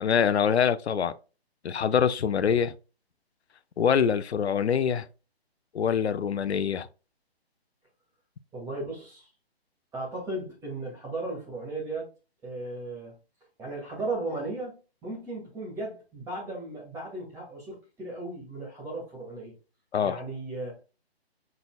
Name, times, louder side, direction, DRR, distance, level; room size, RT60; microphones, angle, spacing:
voice 1, 0.0-1.1 1.6-2.7 3.8-5.1 5.7-6.9 19.9-20.2, left 7 dB, 90° left, 0.6 m, -24 dB
voice 2, 8.5-9.3 9.9-12.1 12.4-13.2 13.6-19.5 20.0-20.8, right 2 dB, 10° right, 1.8 m, -36 dB
5.5 x 4.0 x 2.3 m
hypercardioid pair, 155°, 32 cm